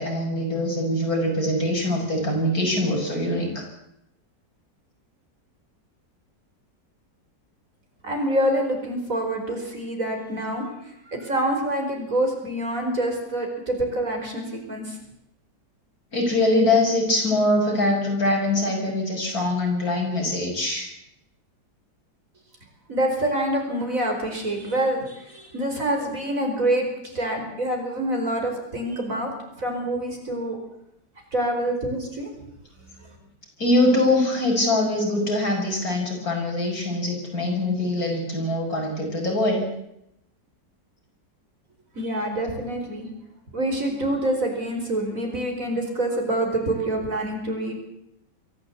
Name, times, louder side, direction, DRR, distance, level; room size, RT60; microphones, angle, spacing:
voice 1, 0.0-3.7 16.1-20.9 33.6-39.7, left 1 dB, 55° left, 0 dB, 7.1 m, -23 dB
voice 2, 8.0-10.7 11.1-15.0 22.9-29.3 29.6-30.6 31.3-32.3 42.0-43.1 43.5-47.7, right 1 dB, 50° right, 3 dB, 5.3 m, -26 dB
23.5 x 15.5 x 8.5 m, 0.79 s
omnidirectional pair, 1.9 m